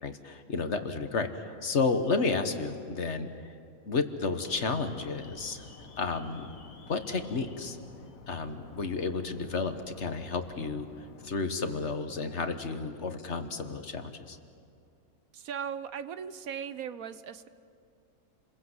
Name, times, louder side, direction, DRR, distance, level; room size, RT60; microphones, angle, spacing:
voice 1, 0.0-3.3 3.9-5.6 6.0-6.5 6.9-7.8 8.3-10.9 11.2-14.4, left 4 dB, 50° left, 8 dB, 1.6 m, -31 dB
Alarm, 4.4-11.3, left 4 dB, 70° left, 1.8 m, -51 dB
voice 2, 15.3-17.5, right 7 dB, 75° right, 13 dB, 1.3 m, -38 dB
29.5 x 22.0 x 8.0 m, 2.4 s
omnidirectional pair, 1.5 m